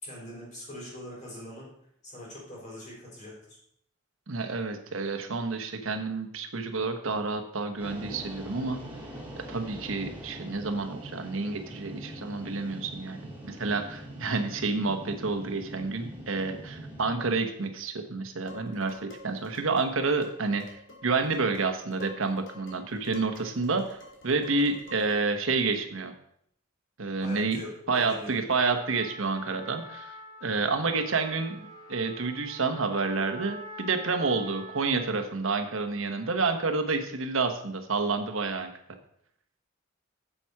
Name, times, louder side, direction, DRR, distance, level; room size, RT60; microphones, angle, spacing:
voice 1, 0.0-1.7 2.0-3.6 27.2-28.4, left 1 dB, 40° left, -4 dB, 4.3 m, -42 dB
voice 2, 4.3-8.8 9.4-20.6 21.0-24.0 24.2-26.1 27.0-27.6 27.9-30.1 30.4-31.6 31.9-38.7, right 4 dB, 80° right, 7 dB, 1.1 m, -29 dB
sound 1, 7.8-17.1, equal, 10° right, 2.5 m, -43 dB
Dishes pots and pans, 18.5-25.3, left 2 dB, 65° left, 2.5 m, -50 dB
Trumpet, 28.7-35.3, equal, 20° left, 2.6 m, -45 dB
7.8 x 7.4 x 4.7 m, 0.69 s
head